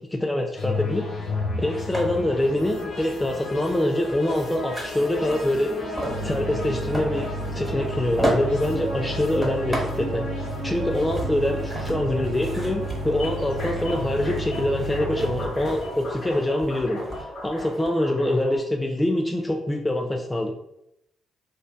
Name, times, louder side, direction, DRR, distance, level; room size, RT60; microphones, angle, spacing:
voice 1, 0.1-1.0 1.6-5.7 6.2-10.3 10.6-20.5, left 1 dB, 15° left, 2 dB, 0.4 m, -25 dB
sound 1, 0.5-18.6, left 2 dB, 60° left, 0.8 m, -34 dB
sound 2, 1.9-18.0, equal, 15° right, 1.2 m, -36 dB
sound 3, 6.1-15.5, right 2 dB, 70° right, 0.3 m, -32 dB
2.5 x 2.2 x 2.2 m, 0.79 s
hypercardioid pair, 40°, 0 cm